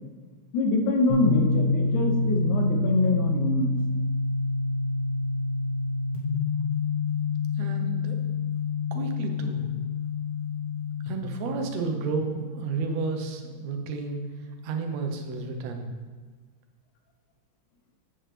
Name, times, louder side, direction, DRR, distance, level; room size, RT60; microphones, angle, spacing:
voice 1, 0.5-3.7, left 2 dB, 90° left, 3 dB, 2.4 m, -24 dB
sound 1, 1.1-14.7, left 3 dB, 45° left, 1.2 m, -28 dB
voice 2, 7.6-8.2 8.9-9.7 11.1-14.2 14.6-15.9, right 4 dB, 70° right, 4 dB, 1.9 m, -31 dB
7.7 x 7.5 x 3.3 m, 1.5 s
omnidirectional pair, 3.3 m